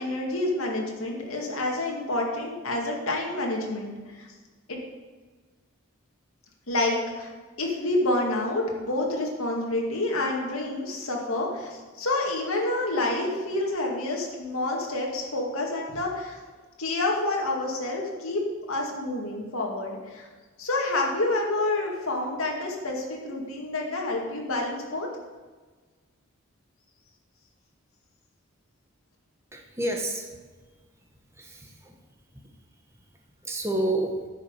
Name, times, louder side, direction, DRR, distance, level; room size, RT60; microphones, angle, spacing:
voice 1, 0.0-4.3 4.7-4.8 6.7-7.3 7.6-16.4 16.8-18.4 18.7-20.3 20.6-25.1, left 2 dB, 80° left, 0 dB, 2.1 m, -28 dB
voice 2, 29.5-30.3 31.4-31.9 32.4-32.5 33.4-34.2, right 1 dB, 10° right, 2 dB, 1.1 m, -29 dB
9.6 x 6.0 x 6.7 m, 1.4 s
head